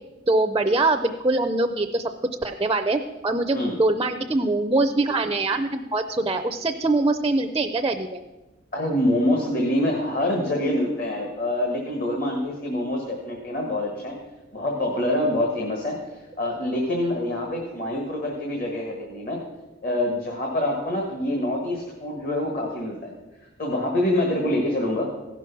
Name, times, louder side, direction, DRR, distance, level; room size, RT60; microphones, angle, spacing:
voice 1, 0.3-2.1 2.4-8.2, right 2 dB, 20° right, 7 dB, 0.4 m, -23 dB
voice 2, 8.7-14.2 14.5-19.4 19.8-23.1 23.6-25.1, left 1 dB, 45° left, 0 dB, 1.5 m, -25 dB
15.5 x 6.1 x 5.8 m, 1.1 s
head